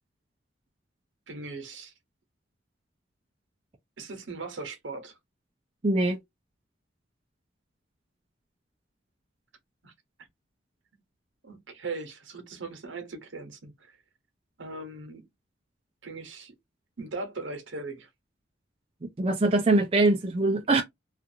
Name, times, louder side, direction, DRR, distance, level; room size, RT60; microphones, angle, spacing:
voice 1, 1.3-1.9 4.0-5.1 9.8-9.9 11.4-14.0 14.6-15.3 16.0-16.5 17.0-18.1, right 3 dB, 80° right, 0.9 m, -39 dB
voice 2, 5.8-6.2 19.2-20.8, right 2 dB, 30° right, 0.4 m, -23 dB
2.5 x 2.4 x 2.7 m
head